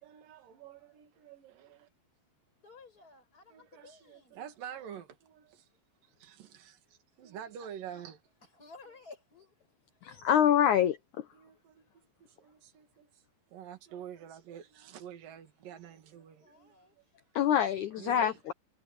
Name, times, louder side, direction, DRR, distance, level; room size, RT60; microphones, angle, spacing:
voice 1, 0.0-1.9 3.5-5.7 6.0-8.2 11.3-11.8 12.2-13.2 13.5-17.0 17.9-18.5, right 9 dB, 60° right, 3.8 m, -48 dB
voice 2, 2.6-4.4 8.6-9.5 10.4-10.8 16.4-16.9, left 3 dB, 20° left, 8.3 m, -54 dB
voice 3, 10.0-11.2 17.4-18.5, left 10 dB, 80° left, 1.7 m, -26 dB
omnidirectional pair, 4.7 m